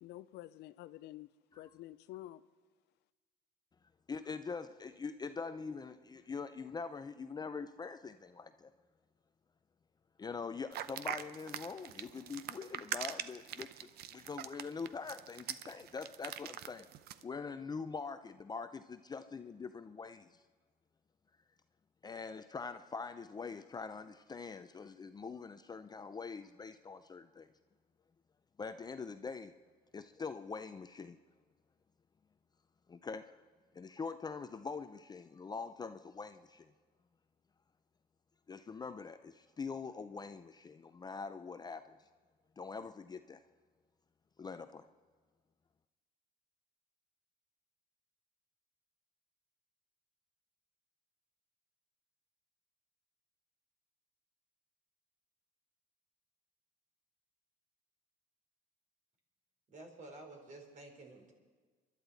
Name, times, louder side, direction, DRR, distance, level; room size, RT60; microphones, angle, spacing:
voice 1, 0.0-2.4, left 15 dB, 80° left, 0.5 m, -49 dB
voice 2, 4.1-8.7 10.2-16.9 17.2-20.4 22.0-27.5 28.6-29.5 29.9-31.2 32.9-33.3 33.7-36.7 38.5-42.0 42.6-43.4 44.4-44.8, left 5 dB, 25° left, 0.5 m, -44 dB
sound 1, 10.7-17.2, right 11 dB, 70° right, 0.6 m, -43 dB
voice 3, 59.7-61.3, right 2 dB, 45° right, 3.6 m, -51 dB
29.5 x 11.5 x 4.1 m
cardioid pair, 110°, 17 cm